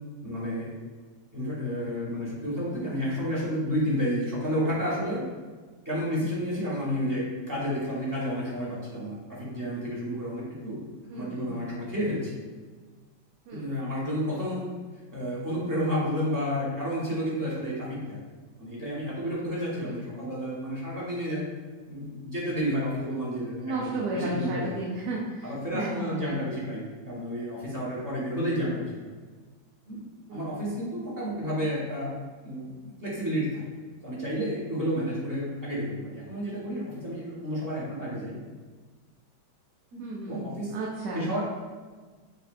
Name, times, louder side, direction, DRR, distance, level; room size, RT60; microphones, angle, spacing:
voice 1, 0.2-0.7 1.3-5.2 5.8-10.8 11.1-12.3 13.5-14.7 15.1-18.2 18.6-21.5 21.9-24.8 25.4-28.9 29.9-30.0 30.3-32.1 32.4-33.6 34.0-38.4 39.9-40.7 41.1-41.4, equal, 15° right, -8 dB, 1.1 m, -31 dB
voice 2, 11.1-11.6 13.5-13.7 19.8-20.0 23.6-26.4 30.3-30.6 40.0-41.2, right 2 dB, 70° right, -4 dB, 1.2 m, -34 dB
6.5 x 2.7 x 2.5 m, 1.4 s
omnidirectional pair, 1.9 m